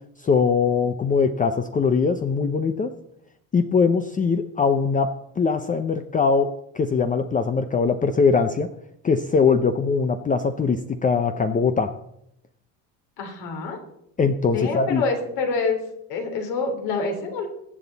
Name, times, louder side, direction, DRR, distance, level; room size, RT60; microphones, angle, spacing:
voice 1, 0.2-2.9 3.5-5.1 5.4-6.5 6.7-8.7 9.0-11.9 14.2-15.0, left 5 dB, 20° left, 8 dB, 0.7 m, -21 dB
voice 2, 13.2-13.8 14.5-15.8 16.1-17.5, left 4 dB, 65° left, 3 dB, 3.6 m, -26 dB
21.5 x 8.1 x 4.1 m, 0.76 s
cardioid pair, 125°, 39 cm